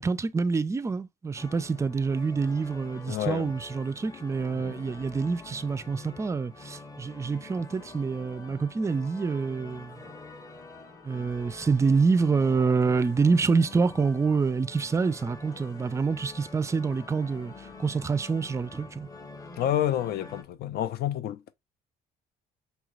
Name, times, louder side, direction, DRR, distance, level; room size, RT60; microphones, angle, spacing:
voice 1, 0.0-10.0 11.0-19.1, right 4 dB, 15° right, 0.4 m, -27 dB
sound 1, 1.4-20.4, left 3 dB, 20° left, 1.0 m, -46 dB
voice 2, 3.1-3.5 4.6-4.8 19.6-21.5, left 11 dB, 70° left, 0.6 m, -29 dB
5.5 x 3.0 x 2.4 m
cardioid pair, 110°, 17 cm